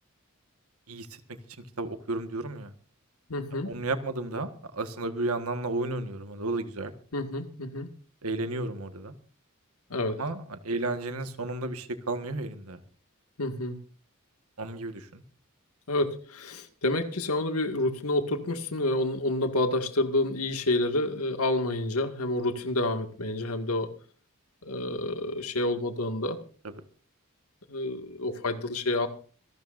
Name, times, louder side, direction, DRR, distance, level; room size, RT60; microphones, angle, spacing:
voice 1, 1.8-2.7 3.6-6.9 8.2-9.1 10.2-12.8 14.6-15.2 26.6-26.7, right 2 dB, 80° right, 9 dB, 1.6 m, -32 dB
voice 2, 3.3-3.7 7.1-7.9 9.9-10.2 13.4-13.8 15.9-23.9 24.6-26.4 27.7-29.1, left 2 dB, 90° left, 7 dB, 2.0 m, -29 dB
26.5 x 12.0 x 2.6 m, 0.40 s
head